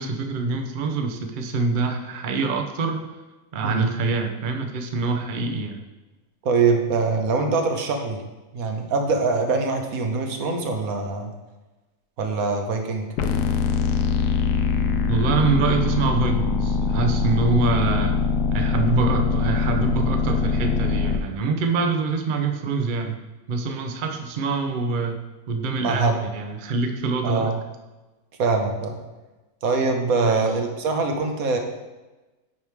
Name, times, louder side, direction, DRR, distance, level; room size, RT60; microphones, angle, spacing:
voice 1, 0.0-3.1 3.5-5.8 15.1-18.2 18.5-23.2 23.5-27.5 30.2-30.5, right 4 dB, 90° right, 5 dB, 0.4 m, -25 dB
voice 2, 3.6-3.9 6.4-8.2 8.5-11.3 12.2-13.1 25.8-26.2 27.2-27.6 28.4-29.0 29.6-31.6, right 4 dB, 60° right, 4 dB, 1.2 m, -23 dB
sound 1, 13.2-21.2, left 5 dB, 75° left, 1.1 m, -23 dB
9.8 x 3.5 x 4.6 m, 1.1 s
omnidirectional pair, 1.8 m